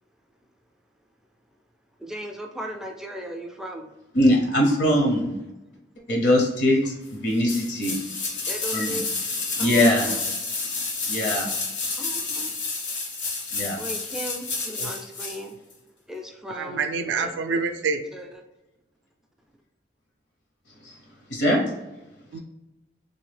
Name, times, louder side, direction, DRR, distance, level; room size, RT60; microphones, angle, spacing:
voice 1, 2.0-3.9 8.5-9.1 9.6-10.2 12.0-12.5 13.8-15.5 16.1-17.4 18.1-18.4, equal, 5° right, 2 dB, 0.3 m, -37 dB
voice 2, 4.1-5.4 6.1-8.0 8.7-9.0 9.5-10.2 11.1-11.5 13.5-13.8 20.8-21.0 21.3-21.6, left 1 dB, 70° left, 0 dB, 0.7 m, -21 dB
sound 1, 7.5-15.4 15.7-15.8, left 3 dB, 85° left, 1.1 m, -30 dB
voice 3, 16.5-18.0 22.3-22.4, right 5 dB, 80° right, 8 dB, 0.3 m, -27 dB
3.4 x 2.6 x 3.3 m, 1.0 s
head